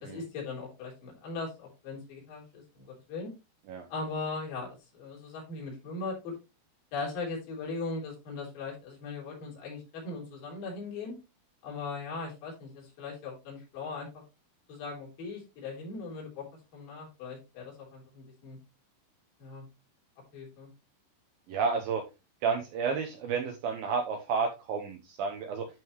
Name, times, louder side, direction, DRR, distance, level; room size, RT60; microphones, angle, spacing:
voice 1, 0.0-3.3 3.9-6.3 6.9-11.2 11.6-14.1 14.7-16.5 16.7-18.6 19.4-19.7 20.3-20.7, left 3 dB, 55° left, -3 dB, 5.1 m, -39 dB
voice 2, 21.5-22.0 22.4-25.7, right 5 dB, 70° right, 3 dB, 2.5 m, -31 dB
11.0 x 5.4 x 3.2 m, 0.26 s
omnidirectional pair, 4.9 m